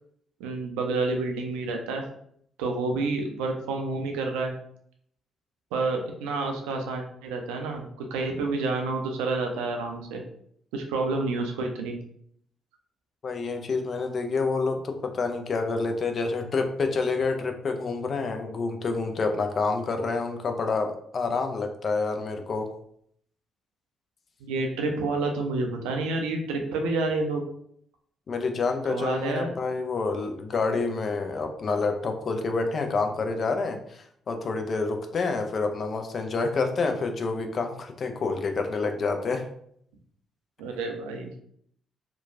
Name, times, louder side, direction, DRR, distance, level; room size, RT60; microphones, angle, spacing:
voice 1, 0.4-2.0 2.6-4.5 5.7-10.2 10.7-12.0 24.4-27.4 28.9-29.6 40.6-41.3, right 3 dB, 70° right, 3 dB, 0.4 m, -29 dB
voice 2, 13.2-22.7 28.3-39.4, left 4 dB, 50° left, 5 dB, 0.4 m, -28 dB
2.9 x 2.2 x 2.5 m, 0.67 s
figure-of-eight pair, 40°, 0 cm